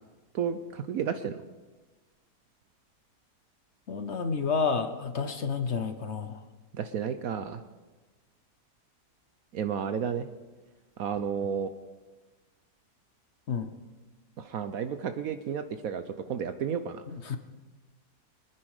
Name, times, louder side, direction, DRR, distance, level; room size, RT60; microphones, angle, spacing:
voice 1, 0.3-1.4 6.7-7.6 9.5-10.3 11.0-11.7 14.4-17.0, right 7 dB, 70° right, 9 dB, 1.1 m, -32 dB
voice 2, 3.9-6.4 13.5-13.7 17.1-17.4, left 5 dB, 50° left, 8 dB, 1.1 m, -30 dB
24.0 x 9.9 x 4.9 m, 1.2 s
omnidirectional pair, 1.7 m